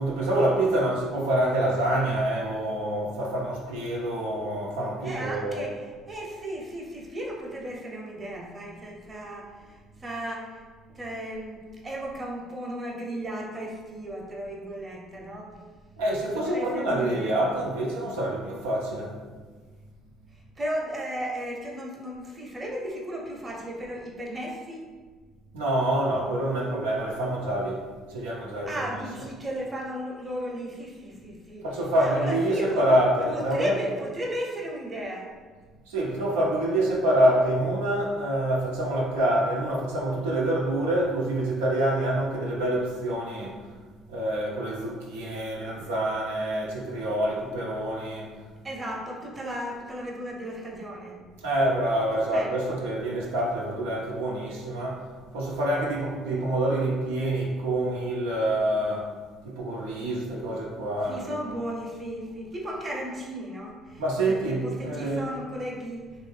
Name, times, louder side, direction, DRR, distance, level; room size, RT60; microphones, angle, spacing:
voice 1, 0.0-5.6 16.0-19.2 25.5-27.8 28.1-29.3 31.6-33.8 35.9-43.6 44.1-48.4 51.4-55.1 55.3-59.1 59.4-61.4 64.0-65.3, right 1 dB, 85° right, -3 dB, 0.6 m, -26 dB
voice 2, 5.0-10.6 10.9-15.5 16.3-17.4 20.3-24.8 28.7-31.7 32.0-32.9 33.2-35.3 48.6-51.2 52.1-52.8 61.0-66.1, equal, 30° right, -2 dB, 0.8 m, -35 dB
3.2 x 2.6 x 3.2 m, 1.5 s
hypercardioid pair, 60°, 0 cm